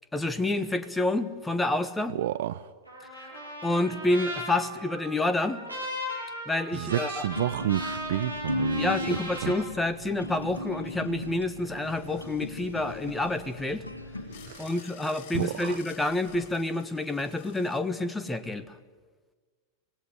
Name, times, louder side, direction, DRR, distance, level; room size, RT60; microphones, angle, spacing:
voice 1, 0.1-2.2 3.6-5.6 6.5-7.2 8.8-13.8 14.6-18.6, left 2 dB, 10° left, 11 dB, 1.4 m, -28 dB
voice 2, 2.1-2.7 6.7-9.5 14.4-14.7 15.3-15.8, right 13 dB, 55° right, 14 dB, 0.6 m, -31 dB
Trumpet, 2.8-9.6, equal, 85° right, 7.1 m, -37 dB
sound 1, 7.2-14.5, left 2 dB, 80° left, 1.8 m, -36 dB
sound 2, 11.8-17.8, left 10 dB, 45° left, 5.1 m, -53 dB
25.5 x 18.5 x 9.1 m, 1.4 s
figure-of-eight pair, 90°, 0 cm